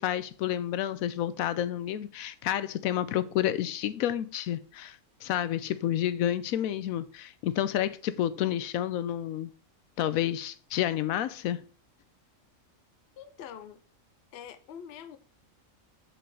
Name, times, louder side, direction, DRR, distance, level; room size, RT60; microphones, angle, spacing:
voice 1, 0.0-9.5 10.0-11.6, left 11 dB, 90° left, 1.0 m, -30 dB
voice 2, 13.2-13.8 14.3-15.2, left 8 dB, 55° left, 0.8 m, -44 dB
5.5 x 5.3 x 5.4 m
omnidirectional pair, 1.4 m